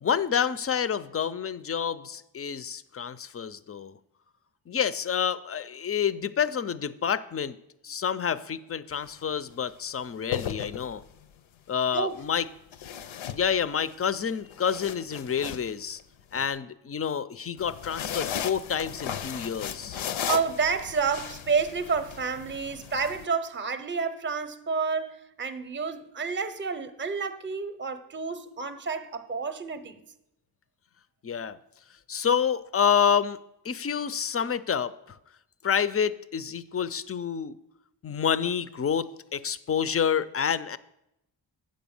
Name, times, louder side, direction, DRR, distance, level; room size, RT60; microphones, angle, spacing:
voice 1, 0.0-4.0 4.7-7.6 7.8-11.0 11.7-12.4 13.3-16.0 16.3-20.0 31.2-31.6 32.1-33.4 33.6-35.2 35.6-37.6 38.0-40.8, left 7 dB, 35° left, 0.4 m, -28 dB
sound 1, 8.9-9.2 10.1-11.2 12.7-13.9 14.3-16.4 17.6-23.2, left 9 dB, 80° left, 0.6 m, -36 dB
voice 2, 19.9-29.9, right 5 dB, 25° right, 0.6 m, -30 dB
7.6 x 5.1 x 7.0 m
cardioid pair, 75°, 46 cm